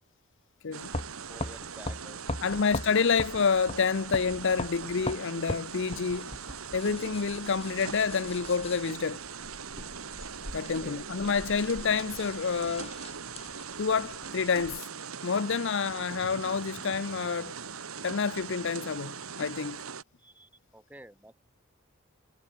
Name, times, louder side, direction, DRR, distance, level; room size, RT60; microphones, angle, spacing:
sound 1, 0.7-20.0, right 6 dB, 75° right, 1.6 m, -41 dB
sound 2, 0.8-14.8, left 1 dB, 30° left, 4.9 m, -41 dB
voice 1, 1.3-2.6 10.6-11.0 20.2-21.3, right 1 dB, 10° right, 7.9 m, -51 dB
voice 2, 2.4-6.3 6.7-9.2 10.5-12.9 13.8-14.9 15.2-17.5 18.0-19.8, left 5 dB, 60° left, 0.6 m, -28 dB
head